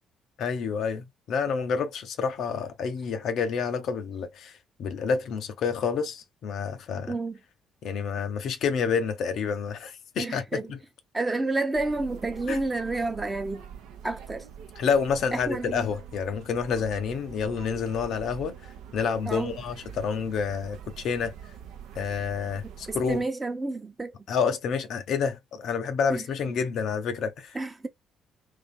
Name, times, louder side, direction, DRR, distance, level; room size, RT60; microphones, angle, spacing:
voice 1, 0.4-4.5 4.8-7.1 7.8-10.8 12.5-12.6 14.8-18.6 18.9-21.3 22.0-23.2 24.3-27.6, left 6 dB, 55° left, 0.5 m, -28 dB
voice 2, 7.1-7.4 10.2-10.7 11.1-13.6 14.0-14.5 15.3-15.9 19.3-19.5 22.9-24.2 26.1-26.2 27.5-27.9, right 2 dB, 20° right, 0.9 m, -30 dB
sound 1, 11.7-23.2, right 8 dB, 60° right, 0.6 m, -44 dB
2.9 x 2.6 x 3.6 m
figure-of-eight pair, 45°, 0 cm